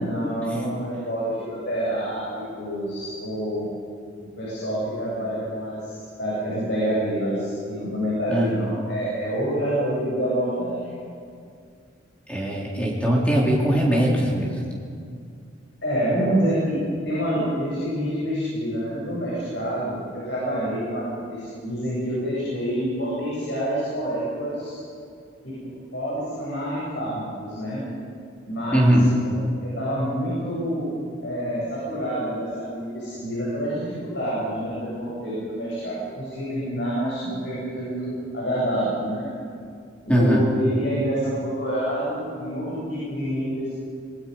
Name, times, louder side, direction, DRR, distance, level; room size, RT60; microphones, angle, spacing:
voice 1, 0.0-2.2 2.6-3.7 4.4-11.0 15.8-16.8 17.0-24.8 25.4-25.5 25.9-27.8 28.4-28.9 29.3-30.9 31.2-39.3 40.0-43.7, equal, 65° left, -8 dB, 7.9 m, -27 dB
voice 2, 12.3-14.6 28.7-29.1 40.1-40.4, equal, 5° left, -4 dB, 3.6 m, -20 dB
26.0 x 21.0 x 5.5 m, 2.3 s
head